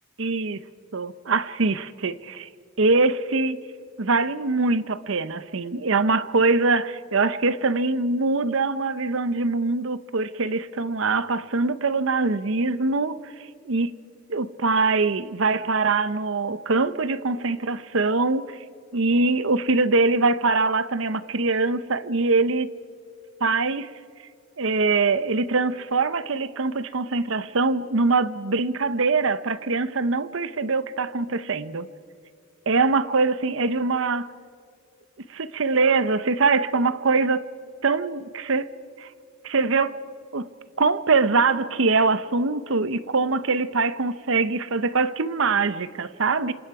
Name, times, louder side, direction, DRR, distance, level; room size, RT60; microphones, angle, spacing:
voice 1, 0.2-0.6 0.9-2.5 2.8-3.6 4.0-13.2 13.7-13.9 14.3-18.6 18.9-22.7 23.4-23.9 24.6-31.9 32.7-34.3 35.3-37.4 37.8-38.7 39.0-39.1 39.4-39.9 40.3-40.5 40.8-46.5, right 3 dB, 70° right, 0.8 m, -23 dB
27.5 x 26.0 x 4.9 m
head